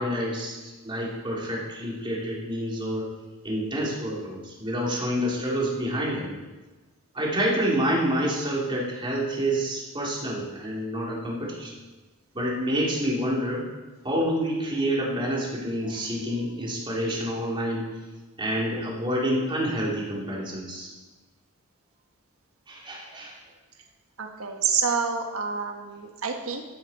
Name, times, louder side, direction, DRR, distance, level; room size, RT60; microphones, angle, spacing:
voice 1, 0.0-3.1 3.4-6.3 7.1-11.7 12.3-13.6 14.0-17.9 18.4-20.9 22.7-23.4, equal, 25° right, -4 dB, 3.2 m, -28 dB
voice 2, 24.2-26.6, right 6 dB, 85° right, 3 dB, 1.4 m, -28 dB
13.0 x 11.5 x 4.4 m, 1.2 s
head